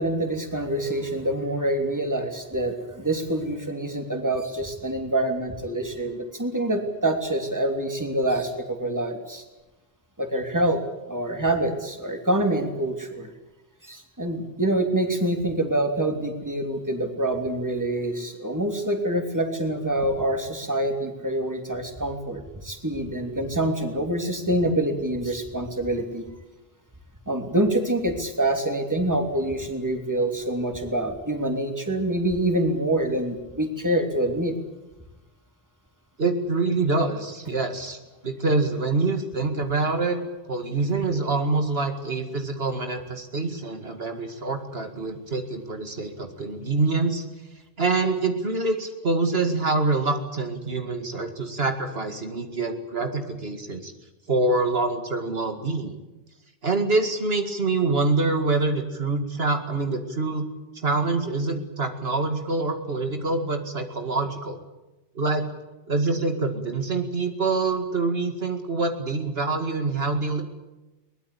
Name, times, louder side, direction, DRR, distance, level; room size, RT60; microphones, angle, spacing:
voice 1, 0.0-9.4 10.2-10.8 11.1-13.3 13.8-26.2 27.3-34.5, right 1 dB, 15° right, 5 dB, 3.0 m, -26 dB
voice 2, 36.2-38.0 38.2-40.2 40.5-47.2 47.8-53.9 54.3-55.9 56.6-60.5 60.7-64.6 65.2-65.5 65.9-70.4, right 3 dB, 70° right, 6 dB, 2.4 m, -25 dB
22.5 x 20.5 x 8.5 m, 1.1 s
omnidirectional pair, 1.0 m